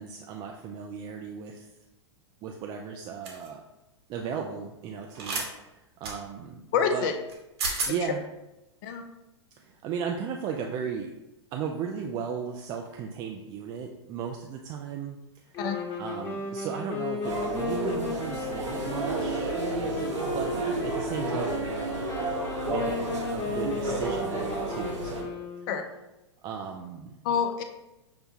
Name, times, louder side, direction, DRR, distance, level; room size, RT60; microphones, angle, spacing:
voice 1, 0.0-1.7 2.4-3.6 4.1-6.6 6.9-7.1 7.9-8.2 9.6-11.1 11.5-15.2 16.0-20.6 20.8-22.1 22.7-25.3 26.4-27.1, right 7 dB, 30° right, 2 dB, 0.4 m, -36 dB
sound 1, 3.3-3.5 5.2-5.5 6.0-6.2 7.3-7.4 7.6-7.9, right 3 dB, 60° right, 1.3 m, -30 dB
voice 2, 6.7-7.1 8.8-9.0 15.6-15.8 25.7-25.8 27.2-27.6, left 7 dB, 45° left, 7 dB, 0.5 m, -26 dB
sound 2, 15.5-25.9, left 3 dB, 30° left, 1.3 m, -35 dB
sound 3, 17.2-25.2, right 2 dB, 85° right, 1.1 m, -32 dB
6.6 x 2.2 x 2.7 m, 0.95 s
hypercardioid pair, 110°, 15 cm